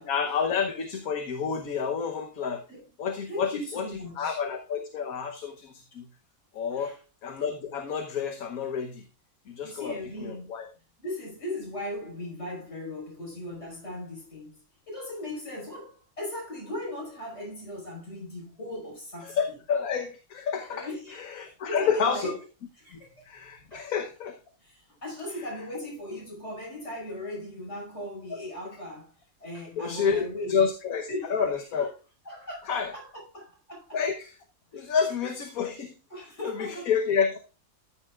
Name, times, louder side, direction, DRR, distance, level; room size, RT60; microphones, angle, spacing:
voice 1, 0.1-2.6 3.0-3.8 4.2-6.0 6.5-6.9 7.2-9.0 9.5-10.0 10.2-10.7 19.2-20.9 21.2-22.3 23.2-24.3 29.8-31.9 32.7-32.9 33.9-34.3 34.7-35.9 36.4-37.4, left 6 dB, 75° left, 1.5 m, -29 dB
voice 2, 3.3-4.4 6.7-7.0 9.6-10.5 11.0-14.6 14.9-19.4 20.7-22.4 22.8-23.3 23.7-23.9 24.6-29.1 29.4-30.6 31.1-31.4 32.3-34.0 34.7-35.0 36.1-36.9, left 1 dB, 50° left, 5.5 m, -38 dB
14.0 x 8.8 x 2.4 m
omnidirectional pair, 1.5 m